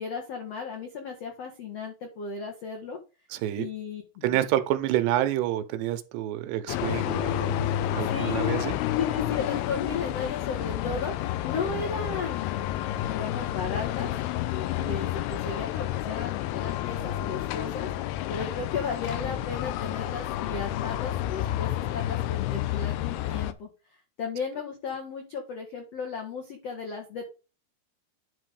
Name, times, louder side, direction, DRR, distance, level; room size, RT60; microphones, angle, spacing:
voice 1, 0.0-3.0 3.5-4.4 8.0-8.5 8.9-14.1 14.5-27.3, left 5 dB, 65° left, 1.5 m, -35 dB
voice 2, 3.3-3.7 4.2-8.8 14.8-14.9, right 13 dB, 85° right, 2.9 m, -28 dB
sound 1, 6.7-23.5, left 13 dB, 80° left, 2.3 m, -30 dB
10.5 x 3.9 x 5.0 m
omnidirectional pair, 5.0 m